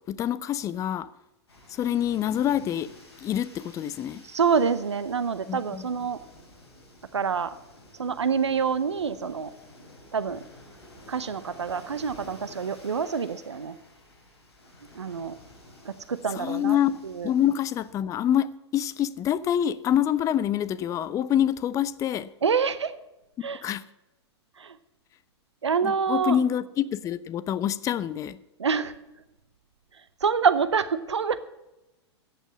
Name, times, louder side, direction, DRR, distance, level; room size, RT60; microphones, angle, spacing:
voice 1, 0.1-1.1 1.7-2.9 3.2-4.2 5.5-5.8 16.3-22.3 23.6-23.8 25.8-28.4, left 10 dB, 20° left, 0.6 m, -26 dB
sound 1, 1.5-17.9, left 1 dB, 65° left, 5.3 m, -51 dB
voice 2, 4.3-6.2 7.1-7.5 8.0-9.5 10.1-10.4 11.1-13.7 14.9-15.4 15.8-16.8 17.0-17.3 22.4-22.9 23.4-23.6 24.6-24.8 25.6-26.4 28.6-28.9 30.2-31.4, right 6 dB, 75° right, 0.8 m, -26 dB
14.5 x 8.2 x 7.2 m
figure-of-eight pair, 100°, 15 cm